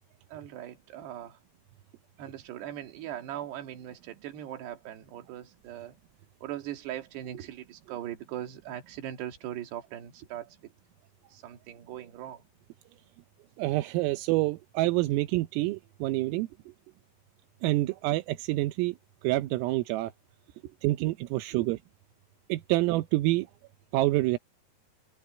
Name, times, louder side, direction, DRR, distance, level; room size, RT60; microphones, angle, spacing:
voice 1, 0.3-1.4 2.2-6.0 6.4-10.7 11.3-12.4 16.3-16.7 20.6-20.8 21.5-21.7, right 11 dB, 60° right, 4.1 m, -40 dB
voice 2, 13.6-16.5 17.6-19.0 19.2-20.1 20.8-21.8 22.5-23.5 23.9-24.4, right 18 dB, 85° right, 3.6 m, -27 dB
omnidirectional pair, 5.9 m